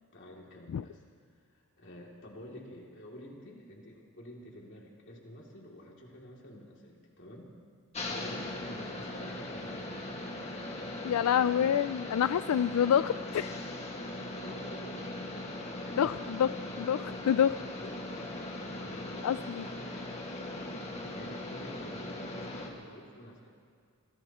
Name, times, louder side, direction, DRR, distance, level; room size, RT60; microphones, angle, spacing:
voice 1, 0.1-1.0 1.5-7.5 8.0-10.0 11.1-11.7 14.2-16.2 17.7-19.2 20.9-23.5, equal, 60° left, -2 dB, 2.8 m, -49 dB
sound 1, 7.9-22.7, left 1 dB, 30° left, 1.8 m, -39 dB
voice 2, 11.0-13.6 16.0-16.5 16.8-17.5 19.2-19.7, left 9 dB, 85° left, 13 dB, 0.3 m, -27 dB
25.5 x 18.0 x 3.0 m, 2.1 s
head